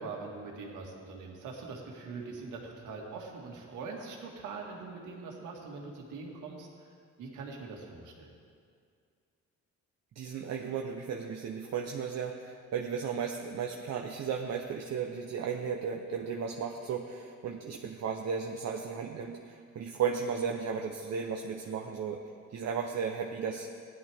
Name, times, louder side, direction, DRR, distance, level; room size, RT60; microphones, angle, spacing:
voice 1, 0.0-6.9 7.2-8.3, right 4 dB, 90° right, 0 dB, 2.0 m, -42 dB
voice 2, 10.2-22.2 22.5-23.7, right 6 dB, 60° right, 2 dB, 0.9 m, -35 dB
16.0 x 11.0 x 3.6 m, 2.2 s
cardioid pair, 90°, 30 cm